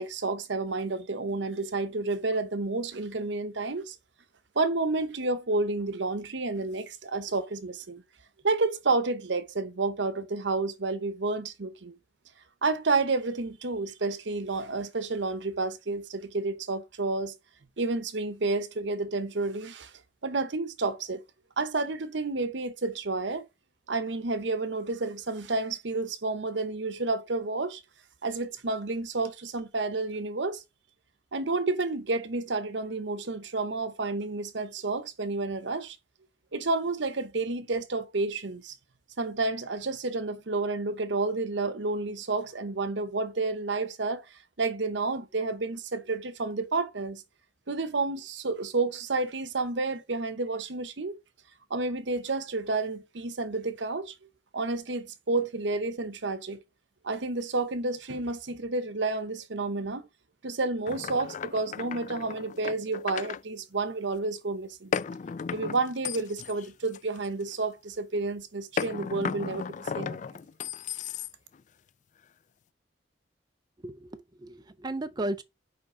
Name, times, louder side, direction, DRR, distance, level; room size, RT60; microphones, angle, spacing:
voice 1, 0.0-4.0 4.5-8.0 8.4-11.9 12.6-17.3 17.8-19.9 20.2-21.2 21.6-23.5 23.9-27.8 28.2-30.6 31.3-36.0 36.5-38.7 39.2-44.2 44.6-47.2 47.7-51.2 51.7-54.1 54.5-56.6 57.0-60.0 60.4-64.9 65.5-70.2, right 3 dB, 70° right, 0.9 m, -30 dB
sound 1, 60.9-63.4 64.9-67.5 68.8-71.6, left 6 dB, 40° left, 0.3 m, -35 dB
voice 2, 73.8-75.4, right 1 dB, 20° right, 0.5 m, -34 dB
5.7 x 5.0 x 5.0 m
head